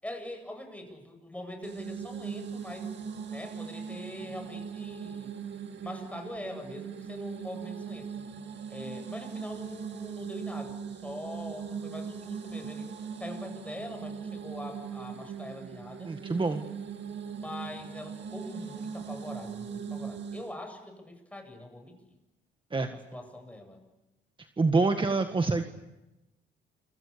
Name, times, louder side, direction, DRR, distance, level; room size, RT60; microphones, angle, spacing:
voice 1, 0.0-2.9 3.3-5.3 5.8-8.1 8.7-12.9 13.2-16.1 17.4-22.1 22.9-23.8, left 1 dB, 5° left, 5 dB, 7.8 m, -43 dB
sound 1, 1.6-20.5, right 6 dB, 65° right, 2.5 m, -40 dB
voice 2, 16.0-16.6 22.7-22.9 24.6-25.6, right 3 dB, 25° right, 6 dB, 1.8 m, -26 dB
29.5 x 25.5 x 7.0 m, 0.99 s
cardioid pair, 105°, 19 cm